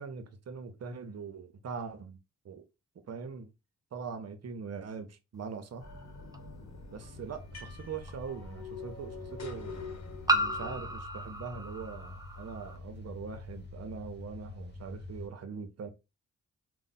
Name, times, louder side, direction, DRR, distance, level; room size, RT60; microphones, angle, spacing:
voice 1, 0.0-2.2 2.4-2.6 3.1-3.5 3.9-5.9 6.9-9.9 10.3-15.9, right 5 dB, 50° right, 0.7 m, -42 dB
sound 1, 5.8-10.9, left 4 dB, 55° left, 1.0 m, -45 dB
sound 2, 6.3-6.4 8.1-8.2 10.3-12.8, right 1 dB, 10° right, 0.5 m, -33 dB
sound 3, 7.1-15.3, left 2 dB, 30° left, 1.0 m, -47 dB
2.6 x 2.1 x 4.0 m
supercardioid pair, 45°, 34 cm